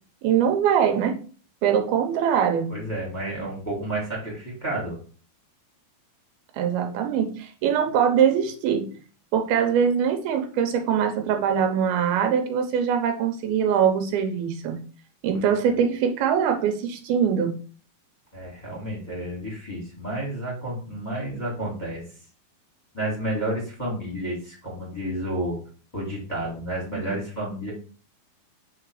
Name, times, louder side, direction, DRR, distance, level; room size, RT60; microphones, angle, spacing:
voice 1, 0.2-1.2 1.6-2.7 6.5-8.9 9.3-14.8 15.2-17.6 27.0-27.1, right 8 dB, 80° right, 5 dB, 2.6 m, -22 dB
voice 2, 2.7-5.0 15.3-15.4 18.3-22.0 22.9-25.6 25.9-27.7, right 1 dB, 15° left, -4 dB, 1.7 m, -31 dB
4.9 x 4.3 x 4.7 m, 0.40 s
omnidirectional pair, 4.4 m